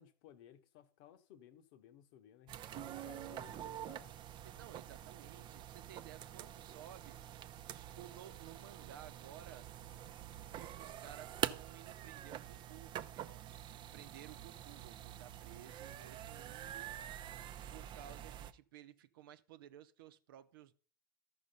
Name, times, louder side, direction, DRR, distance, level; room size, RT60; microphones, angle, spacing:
voice 1, 0.0-4.1, left 9 dB, 60° left, 1.2 m, -59 dB
sound 1, 2.5-18.5, right 11 dB, 40° right, 0.7 m, -46 dB
voice 2, 4.4-7.2 7.7-9.7 10.5-16.9 17.7-20.7, right 11 dB, 70° right, 0.8 m, -56 dB
13.5 x 6.0 x 5.4 m
hypercardioid pair, 80°, 12 cm